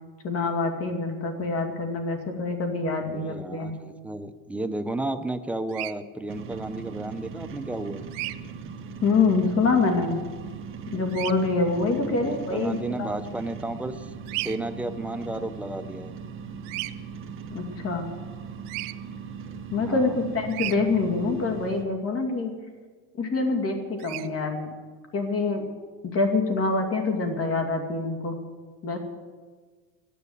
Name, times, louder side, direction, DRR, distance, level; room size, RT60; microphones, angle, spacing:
voice 1, 0.2-3.7 9.0-10.2 10.9-13.1 17.5-18.1 19.7-22.5 23.2-24.7 25.1-25.7 26.1-28.4 28.8-29.0, left 3 dB, 30° left, 4 dB, 2.5 m, -25 dB
voice 2, 3.1-8.0 11.9-16.1 19.8-20.2, right 2 dB, 5° right, 7 dB, 0.4 m, -33 dB
Bird vocalization bird call bird song, 5.7-5.9 8.1-8.4 11.1-11.3 14.3-14.6 16.6-16.9 18.6-18.9 20.5-20.8 24.0-24.3, right 20 dB, 85° right, 0.8 m, -33 dB
sound 1, 6.3-21.8, right 6 dB, 25° right, 1.6 m, -39 dB
14.5 x 11.0 x 8.0 m, 1.4 s
cardioid pair, 145°, 45 cm